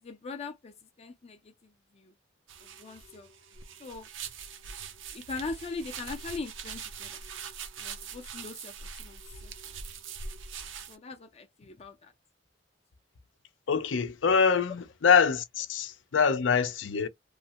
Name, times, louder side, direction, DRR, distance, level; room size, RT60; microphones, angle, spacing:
voice 1, 0.0-2.1 2.6-3.3 3.8-4.1 5.1-7.1 7.8-9.8 10.6-12.1, left 4 dB, 35° left, 0.4 m, -41 dB
sound 1, 2.5-11.0, right 6 dB, 85° right, 0.6 m, -42 dB
voice 2, 13.7-17.1, left 6 dB, 85° left, 0.5 m, -24 dB
3.1 x 2.1 x 2.8 m
head